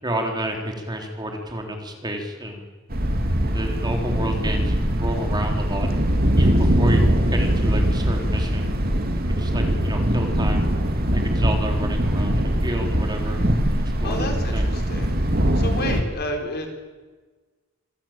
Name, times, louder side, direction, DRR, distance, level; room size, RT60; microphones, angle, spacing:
voice 1, 0.0-2.7 3.4-5.9 6.4-7.0 7.3-8.7 9.3-10.7 11.1-13.4 14.0-14.2 14.5-14.7 15.8-16.0, right 1 dB, 20° right, 3 dB, 3.6 m, -30 dB
Thunder, 2.9-16.0, equal, 50° right, 2.5 m, -22 dB
voice 2, 14.0-15.2 15.5-16.7, left 1 dB, 50° left, 3 dB, 4.3 m, -30 dB
26.5 x 16.5 x 8.9 m, 1.3 s
head